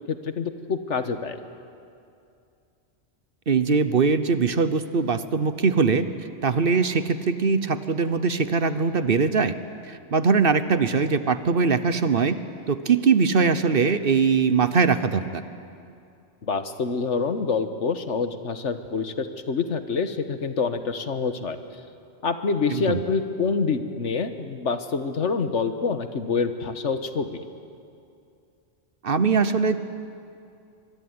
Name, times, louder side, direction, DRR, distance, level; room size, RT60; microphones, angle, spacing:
voice 1, 0.1-1.4 16.4-21.6 22.2-27.4, left 5 dB, 75° left, 9 dB, 1.6 m, -26 dB
voice 2, 3.5-9.5 9.8-12.4 12.7-15.4 22.7-23.0 29.0-29.8, right 5 dB, 50° right, 12 dB, 1.1 m, -21 dB
24.5 x 23.0 x 9.6 m, 2.5 s
omnidirectional pair, 1.2 m